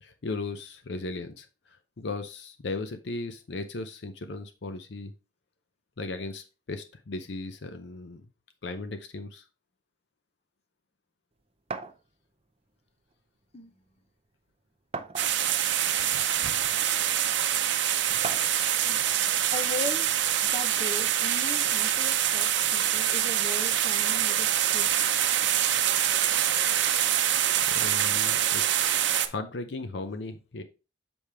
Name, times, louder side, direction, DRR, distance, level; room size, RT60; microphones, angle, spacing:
voice 1, 0.0-1.5 2.0-5.1 6.0-8.2 8.6-9.4 27.7-30.6, left 3 dB, 65° left, 8 dB, 0.6 m, -37 dB
sound 1, 11.7-12.0 13.1-13.2 13.6-13.7 14.9-15.6 16.4-16.5 18.2-18.6, right 4 dB, 30° right, 0.5 m, -36 dB
sound 2, 15.2-29.3, right 10 dB, 70° right, 0.7 m, -25 dB
voice 2, 18.8-20.1 20.5-25.0, left 2 dB, 35° left, 7 dB, 0.8 m, -38 dB
7.0 x 5.0 x 3.4 m, 0.31 s
head